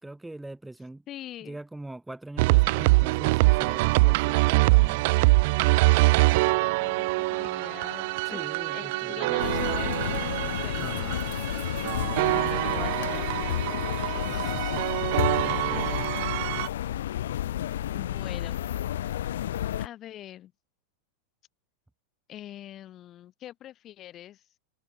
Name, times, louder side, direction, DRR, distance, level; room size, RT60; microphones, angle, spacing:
voice 1, 0.0-1.0 1.4-5.1 8.3-9.3 10.8-11.2 14.3-14.8 15.4-16.0, right 2 dB, 5° right, 2.5 m, -42 dB
voice 2, 1.1-1.6 6.6-8.4 8.7-10.3 10.6-11.1 12.3-14.7 15.5-16.0 17.9-18.7 19.8-20.5 22.3-24.4, left 12 dB, 30° left, 5.0 m, -44 dB
sound 1, 2.4-16.7, right 24 dB, 50° right, 1.0 m, -24 dB
sound 2, 9.4-19.9, left 12 dB, 60° left, 1.7 m, -31 dB
open air
figure-of-eight pair, 90°, 0 cm